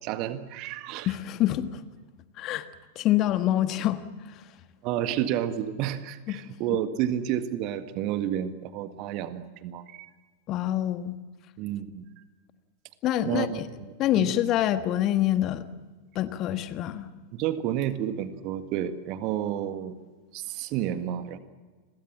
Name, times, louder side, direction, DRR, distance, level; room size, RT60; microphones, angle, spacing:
voice 1, 0.0-1.1 4.8-10.1 11.6-12.0 13.2-13.6 14.2-14.3 17.3-20.0 20.3-21.4, right 11 dB, 40° right, 10 dB, 1.8 m, -30 dB
voice 2, 1.0-1.8 2.4-2.7 2.9-4.0 6.3-6.4 10.5-11.2 13.0-13.5 14.0-15.6 16.1-17.1, left 13 dB, 35° left, 10 dB, 1.5 m, -25 dB
30.0 x 22.5 x 7.5 m, 1.4 s
figure-of-eight pair, 90°, 0 cm